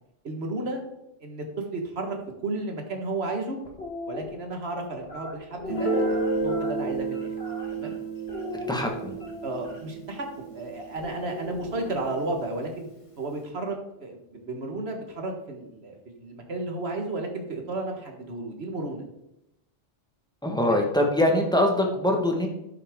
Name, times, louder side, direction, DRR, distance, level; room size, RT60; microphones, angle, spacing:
voice 1, 0.2-0.8 1.2-3.6 4.1-7.3 7.7-8.0 9.4-12.9 13.2-19.0 20.7-20.8, right 2 dB, 80° right, 3 dB, 1.8 m, -33 dB
sound 1, 3.6-4.2 5.0-7.9 8.3-9.8 11.0-12.3, left 3 dB, 75° left, 2.2 m, -38 dB
Guitar, 5.7-11.2, right 3 dB, 35° left, 1.1 m, -31 dB
voice 2, 8.7-9.2 20.4-22.5, left 1 dB, 5° left, 1 dB, 1.5 m, -23 dB
12.0 x 6.7 x 3.7 m, 0.86 s
omnidirectional pair, 1.0 m